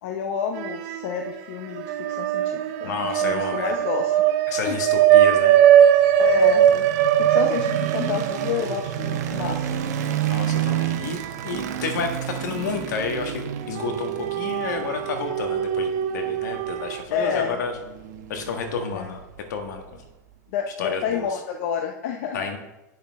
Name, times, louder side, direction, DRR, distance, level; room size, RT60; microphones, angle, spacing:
voice 1, 0.0-4.1 4.6-4.8 6.2-6.9 7.2-9.9 17.1-17.6 18.9-19.2 20.5-22.5, left 7 dB, 55° left, 4 dB, 0.7 m, -29 dB
sound 1, 0.5-1.3 1.7-12.0 12.4-12.5 13.6-17.0, right 10 dB, 50° right, 0.6 m, -21 dB
voice 2, 2.8-3.7 4.5-5.6 10.2-11.2 11.4-17.7 18.3-19.2 19.5-20.0 20.8-21.3 22.3-22.6, left 5 dB, 75° left, 5 dB, 1.5 m, -30 dB
sound 2, 5.9-20.0, right 10 dB, 70° right, 1.0 m, -31 dB
8.5 x 6.5 x 3.5 m, 0.98 s
supercardioid pair, 145°, 10 cm